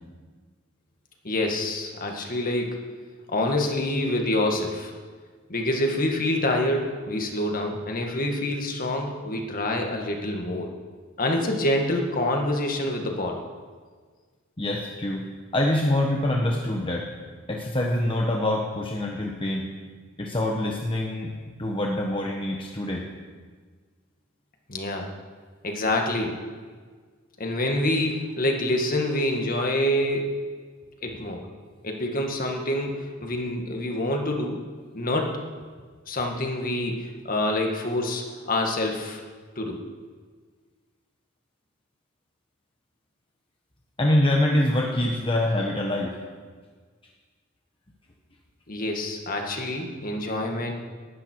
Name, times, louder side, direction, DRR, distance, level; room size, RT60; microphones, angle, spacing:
voice 1, 1.2-2.8 3.3-4.9 5.5-10.7 11.2-13.4 24.7-25.1 25.6-26.4 27.4-30.3 31.0-31.4 31.8-34.6 34.9-35.4 36.1-39.2 39.6-39.8 48.7-50.7, left 1 dB, 45° left, 2 dB, 1.9 m, -26 dB
voice 2, 14.6-15.3 15.5-17.1 17.5-19.7 20.2-21.3 21.6-23.1 44.0-46.2, left 1 dB, 25° left, -1 dB, 1.2 m, -25 dB
19.0 x 11.5 x 4.7 m, 1.6 s
head